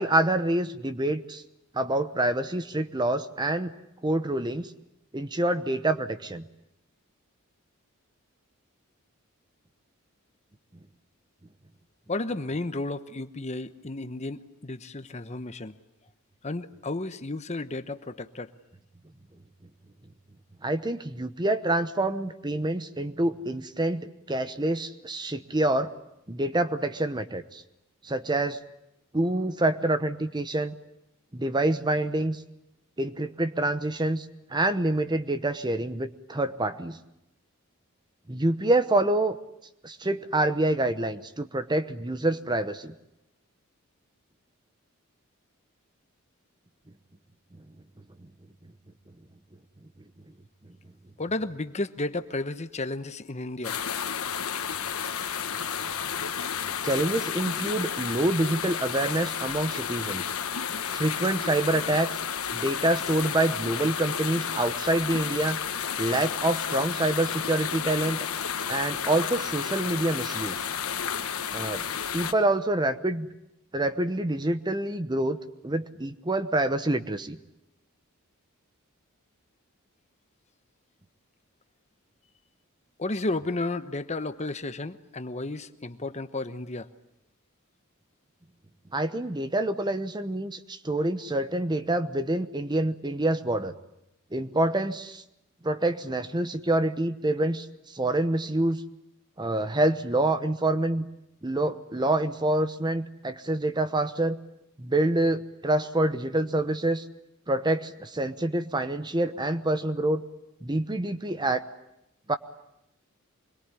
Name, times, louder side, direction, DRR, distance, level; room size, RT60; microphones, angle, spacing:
voice 1, 0.0-1.4 1.7-3.7 4.0-4.7 5.1-6.5 20.6-25.9 26.3-27.6 28.0-28.6 29.1-30.8 31.3-32.4 33.0-37.0 38.3-39.4 39.8-42.9 56.8-60.3 60.9-62.2 62.5-65.6 66.0-68.3 68.7-70.6 71.5-71.8 72.1-73.3 73.7-75.4 75.6-77.4 88.9-93.8 94.3-95.2 95.6-98.8 99.4-101.1 101.4-104.4 104.8-107.1 107.5-110.2 110.6-111.6 112.3-112.4, right 1 dB, 20° right, 11 dB, 0.9 m, -26 dB
voice 2, 12.1-15.8 16.4-18.5 51.2-53.8 83.0-86.9, left 2 dB, 30° left, 11 dB, 1.0 m, -33 dB
sound 1, 53.6-72.3, left 7 dB, 80° left, 1.4 m, -32 dB
25.5 x 22.0 x 9.8 m, 0.85 s
head